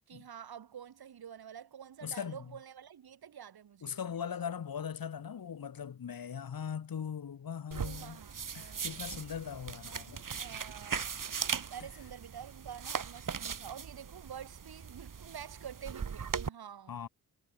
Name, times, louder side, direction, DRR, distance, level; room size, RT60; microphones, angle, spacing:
voice 1, 0.1-4.5 7.8-9.1 10.4-11.1 11.7-17.1, right 8 dB, 80° right, 4.8 m, -48 dB
voice 2, 2.0-2.4 3.8-8.2 8.5-10.3 16.9-17.1, left 7 dB, 70° left, 3.8 m, -40 dB
sound 1, 7.7-16.5, right 6 dB, 55° right, 5.0 m, -39 dB
cardioid pair, 85°, 37 cm